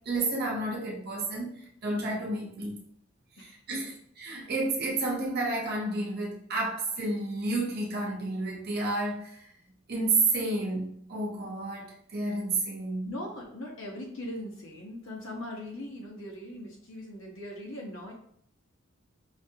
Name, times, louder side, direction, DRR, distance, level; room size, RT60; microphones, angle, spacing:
voice 1, 0.1-1.5 1.8-2.8 3.4-9.4 9.9-13.1, right 2 dB, 50° right, 0.8 m, -31 dB
voice 2, 3.4-4.0 13.0-18.1, left 1 dB, 70° left, 1.0 m, -40 dB
5.1 x 2.5 x 2.8 m
head